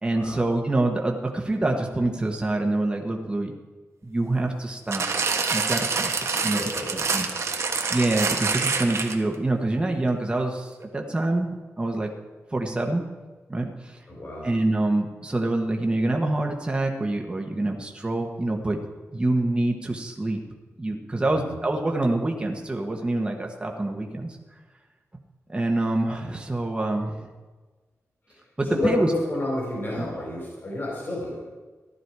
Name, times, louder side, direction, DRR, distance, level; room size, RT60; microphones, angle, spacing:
voice 1, 0.0-3.5 4.0-6.6 6.9-7.3 7.9-12.1 12.5-13.0 13.5-14.0 14.4-18.8 19.1-20.4 20.8-24.4 25.5-27.3 28.6-29.1 30.0-30.1, right 2 dB, 20° right, 1 dB, 1.2 m, -26 dB
sound 1, 4.9-9.4 10.1-10.2, right 4 dB, 65° right, 1.3 m, -26 dB
voice 2, 6.5-7.1 7.6-7.8 14.1-14.5 21.3-21.6 28.7-31.4, left 1 dB, 40° left, -4 dB, 4.4 m, -30 dB
15.0 x 12.0 x 4.7 m, 1.3 s
wide cardioid pair, 165°, 5 cm